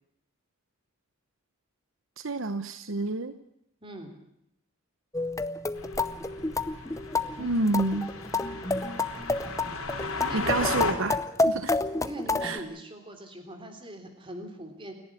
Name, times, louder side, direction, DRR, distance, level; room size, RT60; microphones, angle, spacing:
voice 1, 2.2-3.4 7.4-8.1 10.3-11.2 11.5-11.7 12.4-12.6, right 2 dB, 65° right, 10 dB, 1.0 m, -28 dB
voice 2, 3.8-4.2 10.0-11.1 12.0-14.9, right 1 dB, 25° right, 6 dB, 3.4 m, -42 dB
sound 1, 5.1-12.6, left 2 dB, 15° left, 0.7 m, -29 dB
sound 2, 5.8-10.9, left 3 dB, 80° left, 3.3 m, -36 dB
29.0 x 11.0 x 9.8 m, 0.78 s
head